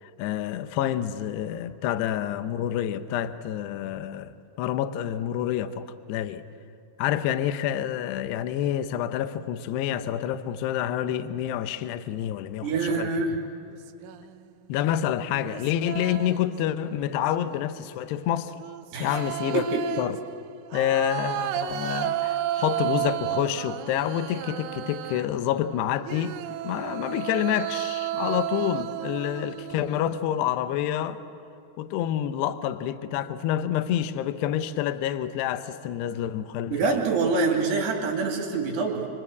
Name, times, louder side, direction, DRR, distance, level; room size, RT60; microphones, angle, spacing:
voice 1, 0.0-6.4 7.0-13.1 14.7-18.6 19.0-20.2 20.7-26.4 26.6-31.2 31.8-37.0, left 11 dB, 75° left, 2.5 m, -28 dB
voice 2, 12.6-13.4 18.9-19.2 19.5-19.8 36.7-39.1, right 4 dB, 55° right, 4.5 m, -25 dB
sound 1, 13.5-14.4 15.3-16.6 17.0-17.6 18.6-25.5 26.0-30.3, right 13 dB, 80° right, 3.1 m, -32 dB
28.0 x 25.5 x 8.1 m
omnidirectional pair, 6.0 m